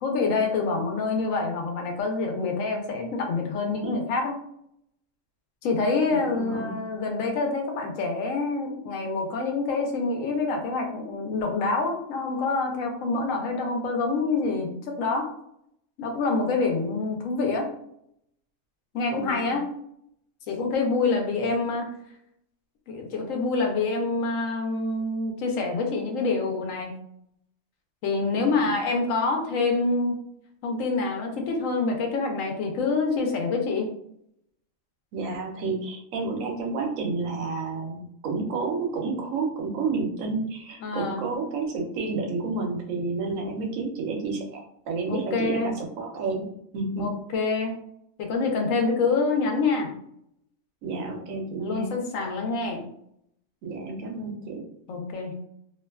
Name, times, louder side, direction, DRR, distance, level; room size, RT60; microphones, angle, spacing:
voice 1, 0.0-4.3 5.6-15.3 16.0-17.7 18.9-19.7 20.5-21.9 22.9-26.9 28.0-30.1 30.6-33.9 40.8-41.3 45.1-45.7 47.0-47.7 48.2-49.9 51.1-51.2 51.6-52.8 54.9-55.3, left 3 dB, 80° left, 2 dB, 1.0 m, -26 dB
voice 2, 3.7-4.0 6.1-6.8 19.1-19.6 28.3-28.7 35.1-46.5 46.7-47.1 50.8-52.0 53.6-54.6, right 3 dB, 80° right, 2 dB, 1.0 m, -30 dB
2.7 x 2.2 x 2.2 m, 0.72 s
omnidirectional pair, 1.4 m